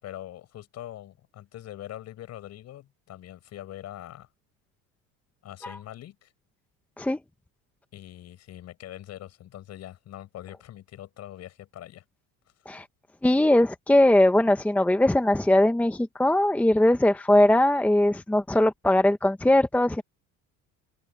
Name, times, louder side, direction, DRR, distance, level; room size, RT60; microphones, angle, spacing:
voice 1, 0.0-4.3 5.4-6.3 7.9-12.0, left 13 dB, 50° left, 6.7 m, -43 dB
voice 2, 13.2-20.0, left 1 dB, 5° left, 1.0 m, -20 dB
open air
cardioid pair, 130°, 33 cm